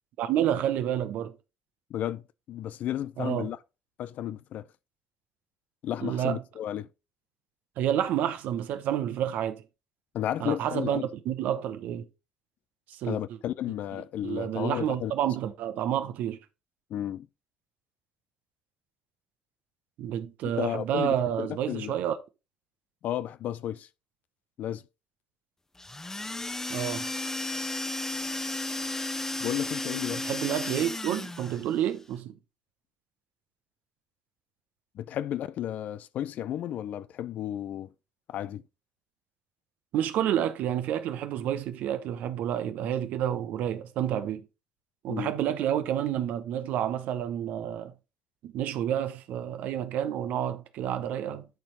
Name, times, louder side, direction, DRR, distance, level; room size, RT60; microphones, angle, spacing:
voice 1, 0.2-1.3 3.2-3.5 6.0-6.4 7.8-9.6 10.4-12.1 12.9-13.2 14.2-16.4 20.0-22.2 26.7-27.1 30.1-32.4 39.9-44.4 45.0-47.9 48.4-51.5, right 10 dB, 65° right, 0.9 m, -29 dB
voice 2, 1.9-2.2 2.5-3.6 4.0-4.7 5.8-6.9 10.1-11.1 13.1-15.1 16.9-17.3 20.6-22.0 23.0-23.9 24.6-24.8 29.4-30.2 34.9-37.9 38.3-38.6 45.1-45.3, left 11 dB, 60° left, 0.5 m, -33 dB
sound 1, 25.8-31.7, left 2 dB, 15° left, 1.1 m, -33 dB
10.5 x 4.4 x 4.0 m
hypercardioid pair, 50°, 3 cm